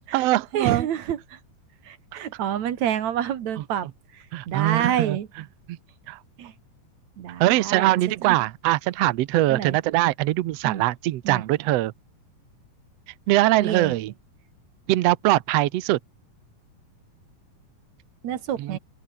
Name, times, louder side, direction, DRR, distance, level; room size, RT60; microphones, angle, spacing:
voice 1, 0.0-0.9 4.3-5.2 6.1-6.2 7.4-11.9 13.3-14.1 14.9-16.0 18.6-18.8, right 16 dB, 85° right, 1.4 m, -22 dB
voice 2, 0.5-1.4 1.9-5.3 6.4-6.5 7.2-7.9 8.2-8.4 9.5-9.8 10.6-10.8 11.2-11.4 13.6-14.0 18.2-18.8, right 10 dB, 60° right, 2.8 m, -28 dB
open air
omnidirectional pair, 4.0 m